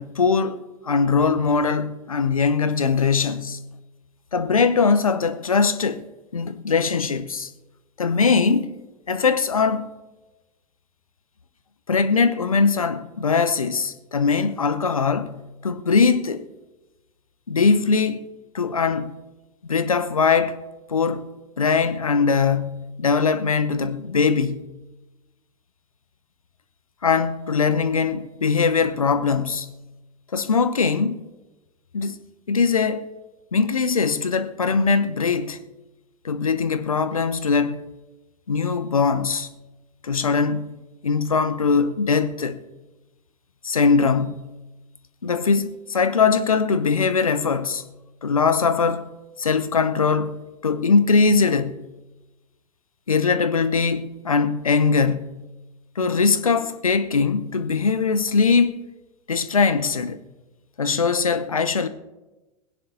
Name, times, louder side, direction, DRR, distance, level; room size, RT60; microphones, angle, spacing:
voice 1, 0.0-3.6 4.3-6.1 6.3-7.5 8.0-8.8 9.1-9.9 11.9-16.5 17.5-18.2 18.5-19.2 19.6-20.6 20.9-21.3 21.6-24.7 27.0-29.7 30.3-31.2 31.9-32.2 32.5-33.0 33.5-35.6 36.2-37.8 38.5-39.5 40.0-40.7 41.0-42.6 43.6-44.5 45.2-47.9 48.2-49.1 49.4-50.4 50.6-51.9 53.1-55.4 56.0-58.8 59.3-60.2 60.8-61.9, left 5 dB, 80° left, 0.7 m, -21 dB
19.5 x 16.5 x 2.7 m
figure-of-eight pair, 85°, 18 cm